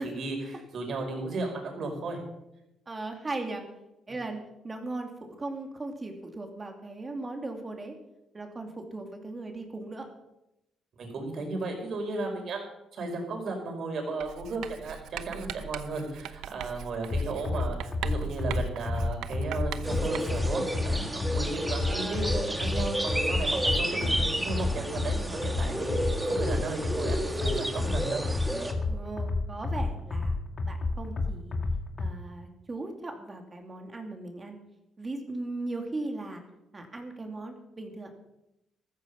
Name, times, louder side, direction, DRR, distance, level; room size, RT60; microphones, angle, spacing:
voice 1, 0.0-2.2 11.0-12.7 12.9-28.2, right 3 dB, 60° right, 2 dB, 5.3 m, -35 dB
voice 2, 2.9-3.6 4.1-8.0 8.3-10.1 21.6-22.4 28.9-30.4 30.7-31.6 32.0-34.6 35.0-36.4 36.7-38.1, right 2 dB, 25° right, 3 dB, 2.8 m, -38 dB
Writing, 14.2-20.6, right 10 dB, 85° right, 0.7 m, -40 dB
sound 1, 17.1-32.1, left 3 dB, 35° left, 2.2 m, -31 dB
sound 2, 19.8-28.7, right 1 dB, 10° right, 2.0 m, -31 dB
14.5 x 13.5 x 5.5 m, 0.88 s
cardioid pair, 90°, 0 cm